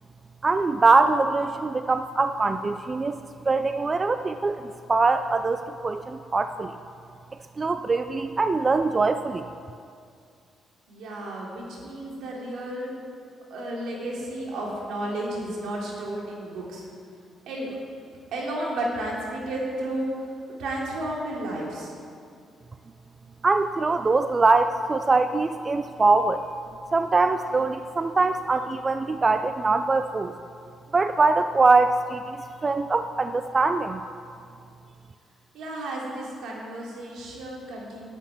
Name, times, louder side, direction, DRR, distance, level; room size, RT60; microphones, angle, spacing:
voice 1, 0.4-3.2 3.5-4.6 4.9-6.8 7.6-9.4 23.4-26.4 26.9-30.3 30.9-32.4 32.6-34.0, right 3 dB, 30° right, 9 dB, 0.5 m, -22 dB
voice 2, 10.9-12.9 13.5-16.8 17.5-17.7 18.3-20.3 20.6-21.9 35.5-38.1, right 1 dB, 80° right, -3 dB, 3.4 m, -32 dB
10.5 x 8.1 x 8.9 m, 2.4 s
cardioid pair, 90°, 0 cm